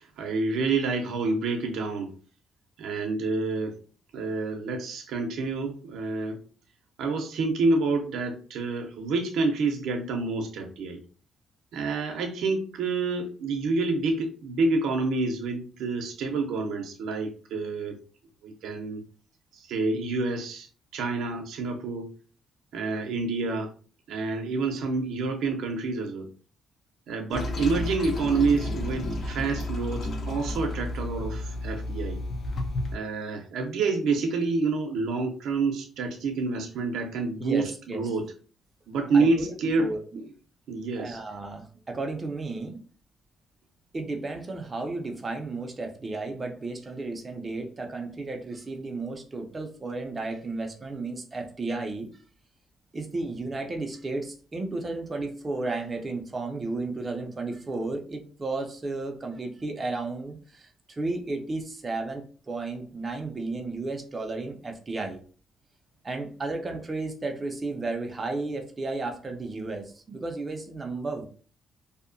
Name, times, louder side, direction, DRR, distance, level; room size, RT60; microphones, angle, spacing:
voice 1, 0.0-2.2 2.8-3.8 4.1-6.4 7.0-11.0 11.7-18.0 18.4-19.0 19.5-20.7 20.9-22.1 22.7-23.7 24.1-26.3 27.1-32.2 32.9-38.3 38.9-39.9 40.2-40.3 40.7-41.2, right 3 dB, 80° right, 3 dB, 0.5 m, -28 dB
Toilet flush, 27.3-33.0, left 1 dB, 55° left, 0.6 m, -32 dB
voice 2, 37.4-38.1 39.1-39.5 39.8-40.0 41.0-42.8 43.9-52.1 52.9-65.2 66.0-71.3, right 3 dB, 30° right, 3 dB, 0.4 m, -33 dB
2.7 x 2.1 x 2.5 m, 0.39 s
cardioid pair, 90°, 0 cm